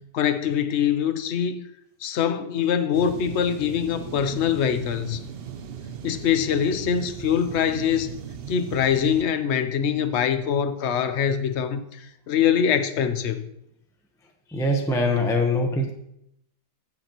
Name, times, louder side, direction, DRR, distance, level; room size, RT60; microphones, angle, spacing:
voice 1, 0.1-1.6 2.0-5.2 6.0-8.1 8.5-11.8 12.3-13.4, left 8 dB, 60° left, 0.7 m, -23 dB
sound 1, 2.9-9.2, right 7 dB, 85° right, 0.5 m, -37 dB
voice 2, 14.5-15.9, left 1 dB, 5° left, 0.5 m, -23 dB
15.0 x 5.9 x 3.0 m
omnidirectional pair, 1.8 m